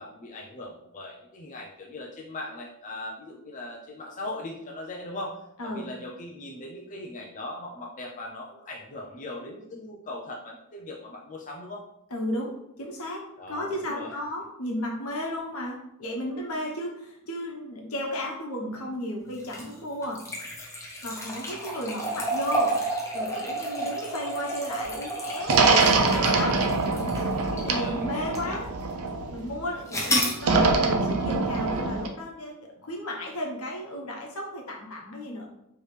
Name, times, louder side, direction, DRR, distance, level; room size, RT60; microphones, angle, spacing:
voice 1, 0.0-5.4 5.7-11.8 13.4-14.1 27.6-28.6, left 1 dB, 35° left, -2 dB, 0.5 m, -39 dB
voice 2, 12.1-20.2 21.0-22.8 23.1-26.6 27.5-28.7 29.3-32.6 32.8-35.5, left 1 dB, 75° left, -1 dB, 1.1 m, -34 dB
sound 1, 19.4-27.8 28.4-28.5 29.9-30.4, right 1 dB, 15° left, 0.9 m, -30 dB
sound 2, 25.5-29.6 30.4-32.1, right 3 dB, 85° right, 0.6 m, -24 dB
4.6 x 3.1 x 3.3 m, 0.81 s
head